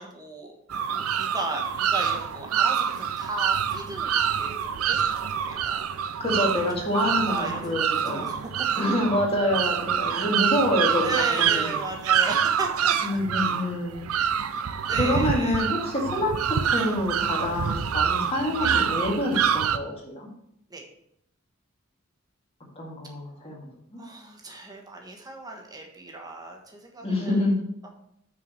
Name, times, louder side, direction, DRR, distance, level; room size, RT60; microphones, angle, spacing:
voice 1, 0.0-6.5 7.3-7.8 8.1-8.4 10.1-10.3 11.0-13.2 14.9-15.8 16.8-17.0 18.6-18.7 20.7-20.8 24.0-27.4 27.8-27.9, right 2 dB, 20° right, 1 dB, 1.3 m, -36 dB
sound 1, 0.7-19.8, right 8 dB, 90° right, 0.5 m, -26 dB
voice 2, 6.2-8.3 8.7-11.8 13.0-14.0 14.9-20.3 22.8-24.0 27.0-27.6, left 1 dB, 30° left, -2 dB, 2.0 m, -27 dB
6.1 x 4.7 x 6.5 m, 0.75 s
head